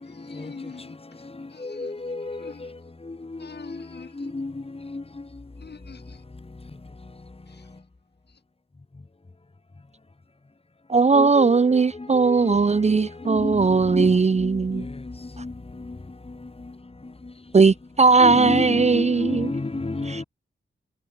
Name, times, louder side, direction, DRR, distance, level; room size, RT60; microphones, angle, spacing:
voice 1, 0.0-2.7 3.4-4.6 5.6-6.2 7.5-7.8 8.3-8.4, left 5 dB, 55° left, 5.7 m, -46 dB
voice 2, 1.6-2.4 4.2-4.5 4.9-5.0 11.1-11.8 12.1-12.5 13.2-13.7 13.9-14.1 14.4-14.9 15.4-15.5 18.2-20.2, left 3 dB, 30° left, 6.0 m, -29 dB
voice 3, 10.9-14.9 17.5-19.5 20.1-20.2, right 4 dB, 35° right, 0.6 m, -18 dB
wide cardioid pair, 105°, 20 cm